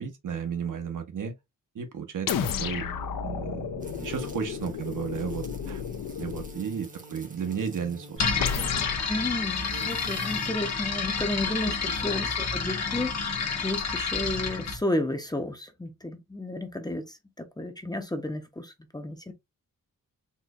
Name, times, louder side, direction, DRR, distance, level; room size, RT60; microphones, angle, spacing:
voice 1, 0.0-1.3 1.7-2.9 3.2-5.8 6.1-8.7, right 7 dB, 65° right, 0.9 m, -34 dB
sound 1, 2.3-6.6 8.4-9.1, left 7 dB, 75° left, 0.6 m, -32 dB
sound 2, 3.8-8.4 9.3-10.5, right 1 dB, 25° right, 0.8 m, -47 dB
sound 3, 8.2-14.8, left 5 dB, 55° left, 1.0 m, -29 dB
voice 2, 9.1-19.3, left 1 dB, 10° left, 0.6 m, -32 dB
4.2 x 2.7 x 2.3 m
wide cardioid pair, 120°, 33 cm